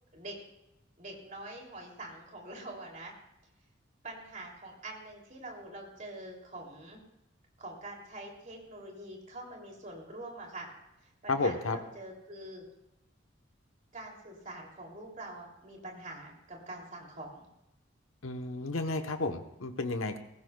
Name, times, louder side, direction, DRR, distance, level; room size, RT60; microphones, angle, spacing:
voice 1, 1.0-3.1 4.0-7.0 7.6-10.7 11.0-12.6 13.9-17.5, right 1 dB, 40° right, -1 dB, 3.0 m, -45 dB
voice 2, 11.3-11.8 18.2-20.2, left 3 dB, 90° left, 7 dB, 1.1 m, -32 dB
18.5 x 15.5 x 2.3 m, 0.89 s
head